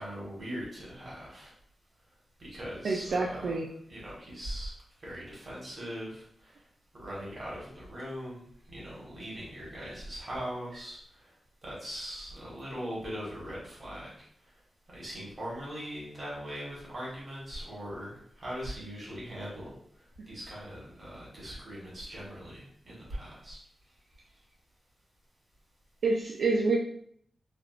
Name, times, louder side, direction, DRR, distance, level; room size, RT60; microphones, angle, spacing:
voice 1, 0.0-1.5 2.4-4.7 5.0-6.6 7.0-11.3 11.6-14.2 14.9-19.7 20.3-23.6, equal, 40° right, -6 dB, 1.3 m, -40 dB
voice 2, 2.8-3.7 26.0-26.7, right 3 dB, 70° right, -3 dB, 0.3 m, -27 dB
3.3 x 2.4 x 2.4 m, 0.64 s
wide cardioid pair, 155°, 0 cm